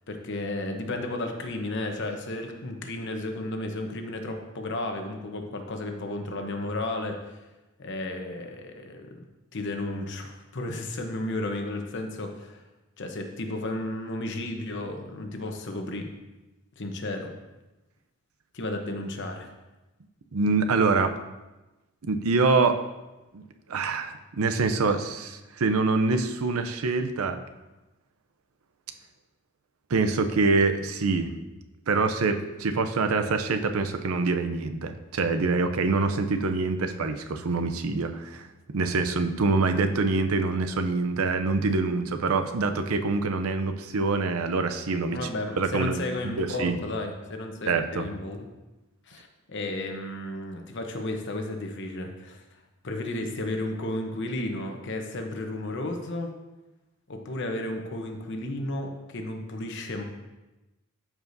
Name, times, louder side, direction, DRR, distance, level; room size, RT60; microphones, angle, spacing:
voice 1, 0.1-7.4 7.8-9.2 9.5-12.6 13.0-16.0 16.8-17.3 18.5-19.5 45.0-48.5 49.1-52.4 52.8-56.3 57.1-60.0, left 1 dB, 55° left, 4 dB, 0.9 m, -33 dB
voice 2, 20.3-21.1 22.0-22.8 23.3-23.4 23.7-27.4 29.9-31.3 31.9-38.5 38.7-45.2 45.6-46.0 46.2-46.8 47.7-48.1, right 3 dB, 85° right, 8 dB, 0.6 m, -25 dB
13.0 x 4.9 x 2.7 m, 1.1 s
head